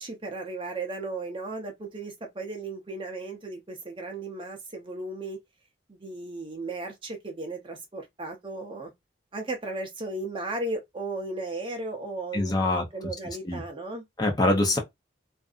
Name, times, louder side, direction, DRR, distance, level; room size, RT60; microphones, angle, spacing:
voice 1, 0.0-5.4 5.9-8.9 9.3-14.0, right 2 dB, 30° right, 0.6 m, -35 dB
voice 2, 12.3-12.8 13.4-13.6 14.2-14.8, left 2 dB, 20° left, 0.7 m, -24 dB
2.6 x 2.5 x 2.3 m
head